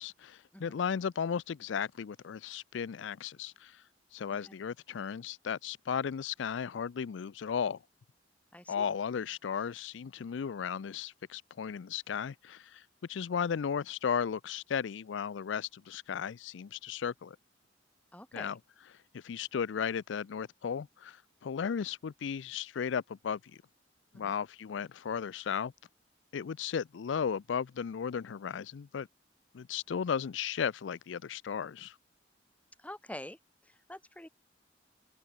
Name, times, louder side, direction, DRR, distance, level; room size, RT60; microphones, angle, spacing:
voice 1, 0.0-3.8 4.1-7.8 8.7-12.8 13.1-17.4 18.3-18.6 19.1-23.4 24.1-25.7 26.3-29.1 29.5-31.9, left 7 dB, 80° left, 0.4 m, -35 dB
voice 2, 8.5-8.9 18.1-18.6 24.1-24.4 32.8-33.4 33.9-34.3, left 1 dB, 10° left, 4.0 m, -46 dB
open air
head